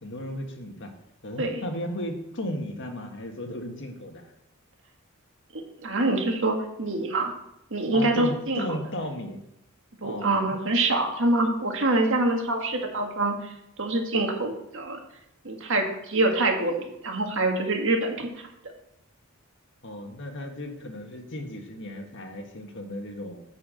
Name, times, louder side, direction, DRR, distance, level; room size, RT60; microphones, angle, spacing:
voice 1, 0.0-0.9 1.2-4.3 7.9-9.4 10.0-10.7 19.8-23.4, left 1 dB, 60° left, 3 dB, 1.6 m, -35 dB
voice 2, 5.5-7.3 7.7-8.6 10.0-13.5 13.8-15.0 15.4-18.3, right 2 dB, 60° right, 2 dB, 1.7 m, -25 dB
10.0 x 4.7 x 7.6 m, 0.82 s
head